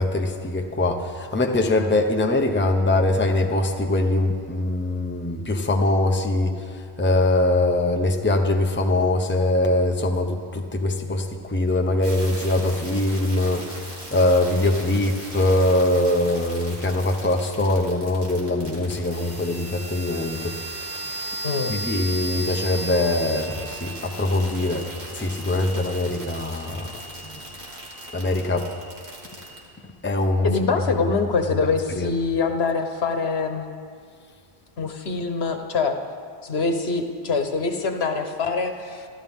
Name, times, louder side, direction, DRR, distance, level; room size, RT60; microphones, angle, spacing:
voice 1, 0.0-6.6 7.0-20.6 21.7-24.9 25.1-26.9 27.2-27.3 28.1-28.7 30.0-30.8 32.0-32.1, left 2 dB, 10° left, 3 dB, 0.8 m, -22 dB
sound 1, 12.0-29.6, right 1 dB, 80° right, 2.9 m, -36 dB
voice 2, 21.4-21.7 30.4-33.6 34.8-36.0 36.4-39.1, left 4 dB, 70° left, 6 dB, 1.3 m, -24 dB
28.0 x 12.0 x 3.6 m, 2.2 s
omnidirectional pair, 1.1 m